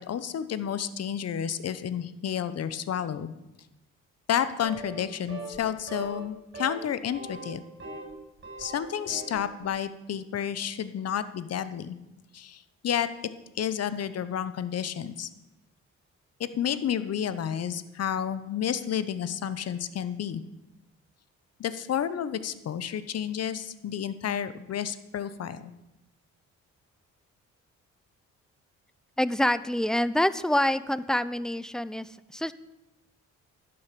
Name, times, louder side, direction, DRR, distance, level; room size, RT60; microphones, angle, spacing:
voice 1, 0.0-3.3 4.3-7.7 8.6-12.0 12.3-13.1 13.5-15.3 16.4-20.4 21.6-25.7, left 9 dB, 55° left, 14 dB, 0.9 m, -31 dB
sound 1, 4.6-5.0 5.3-5.6 5.9-6.3 6.5-6.8 7.1-8.1 8.4-9.4, right 3 dB, 35° right, 4.9 m, -40 dB
voice 2, 29.2-32.5, left 1 dB, ahead, 16 dB, 0.5 m, -26 dB
12.0 x 7.8 x 6.9 m, 0.96 s
cardioid pair, 90°, 30 cm